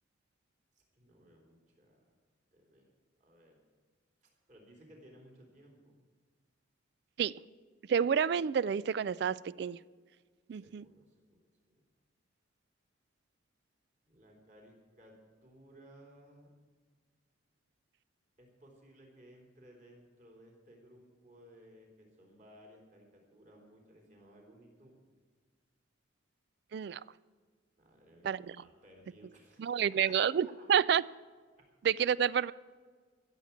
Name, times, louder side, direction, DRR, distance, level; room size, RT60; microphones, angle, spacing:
voice 1, 0.7-2.0 2.5-2.9 3.2-3.6 4.2-6.0 10.5-11.4 11.7-11.8 14.1-16.5 18.4-25.0 27.8-30.5 31.6-31.7, right 1 dB, 40° right, 0 dB, 3.5 m, -59 dB
voice 2, 7.9-9.8 10.5-10.9 26.7-27.0 28.2-28.6 29.6-31.0 31.8-32.5, right 8 dB, 55° right, 20 dB, 0.3 m, -29 dB
15.0 x 7.2 x 8.4 m, 1.5 s
head